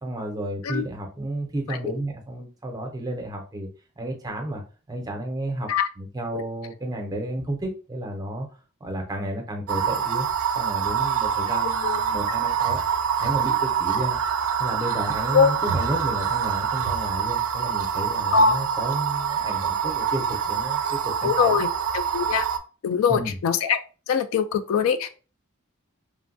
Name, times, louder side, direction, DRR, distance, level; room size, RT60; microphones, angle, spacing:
voice 1, 0.0-3.7 4.0-4.6 4.9-5.7 6.0-8.5 8.8-10.3 10.5-12.8 13.2-14.2 14.6-21.6 23.1-23.3, right 1 dB, 15° right, 2 dB, 0.5 m, -32 dB
sound 1, 9.7-22.6, right 8 dB, 80° right, 0.4 m, -25 dB
voice 2, 21.2-21.7 21.9-22.5 22.8-23.8 24.1-25.1, left 6 dB, 70° left, 10 dB, 0.3 m, -22 dB
3.1 x 2.2 x 2.5 m, 0.35 s
head